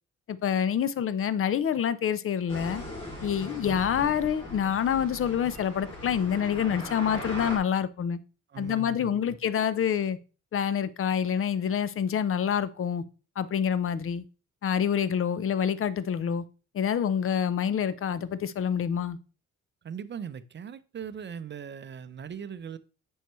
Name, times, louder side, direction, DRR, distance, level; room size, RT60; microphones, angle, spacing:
voice 1, 0.3-2.8 3.2-8.2 8.6-10.2 10.5-13.0 13.4-14.2 14.6-16.4 16.7-19.2, left 8 dB, 45° left, 0.6 m, -27 dB
sound 1, 2.5-7.6, left 1 dB, 20° left, 3.3 m, -39 dB
voice 2, 8.5-9.2 19.8-22.8, right 7 dB, 40° right, 0.6 m, -39 dB
9.0 x 5.4 x 3.1 m
cardioid pair, 90°, 30 cm